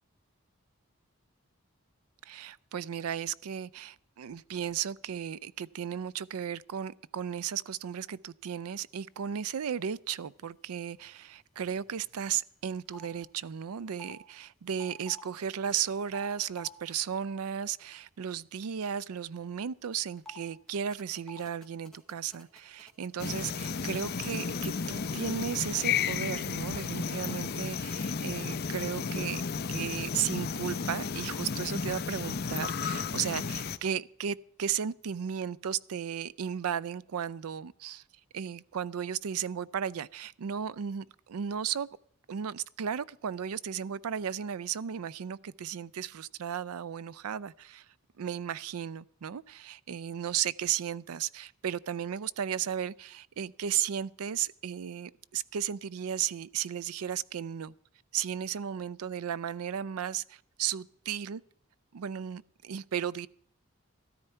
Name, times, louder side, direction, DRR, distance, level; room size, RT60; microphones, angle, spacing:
voice 1, 2.3-29.4 29.7-38.0 38.3-41.9 42.3-47.8 48.2-57.7 58.1-61.4 61.9-63.3, right 8 dB, 85° right, 0.4 m, -35 dB
sound 1, 11.8-12.3 12.6-13.1 13.9-14.1 14.7-15.2 16.1-16.7 20.2-20.4 20.7-25.1, left 2 dB, ahead, 2.1 m, -51 dB
sound 2, 23.2-33.8, left 5 dB, 45° left, 0.5 m, -33 dB
13.5 x 13.0 x 4.4 m
head